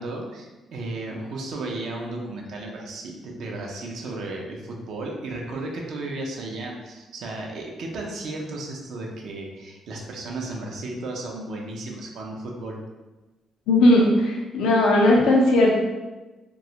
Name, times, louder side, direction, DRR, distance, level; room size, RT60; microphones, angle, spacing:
voice 1, 0.0-12.8, right 2 dB, 70° right, 0 dB, 0.5 m, -34 dB
voice 2, 13.7-15.8, left 1 dB, 85° left, -2 dB, 0.4 m, -17 dB
2.2 x 2.0 x 2.8 m, 1.1 s
cardioid pair, 90°, 0 cm